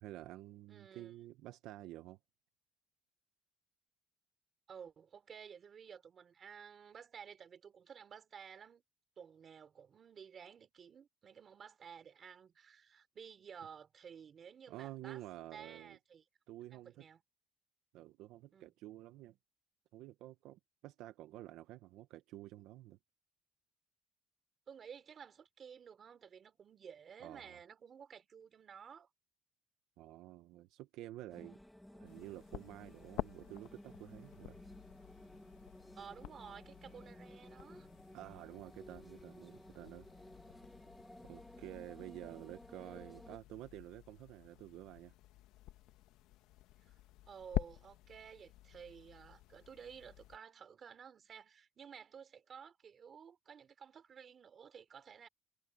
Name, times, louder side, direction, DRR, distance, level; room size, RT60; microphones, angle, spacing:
voice 1, 0.0-2.2 14.7-16.0 16.5-17.1 17.9-19.4 19.9-23.0 27.2-27.6 30.0-31.6 31.9-34.6 38.1-40.1 41.2-45.1, right 15 dB, 80° right, 0.9 m, -50 dB
voice 2, 0.7-1.1 4.7-8.8 9.2-15.2 15.5-16.2 16.7-17.2 18.5-18.7 24.7-29.1 36.0-37.9 46.9-47.0 47.3-55.3, right 7 dB, 35° right, 3.6 m, -54 dB
sound 1, 31.3-43.4, left 1 dB, 5° left, 1.4 m, -56 dB
sound 2, 32.0-50.4, left 15 dB, 85° left, 1.2 m, -48 dB
cardioid pair, 160°, 0 cm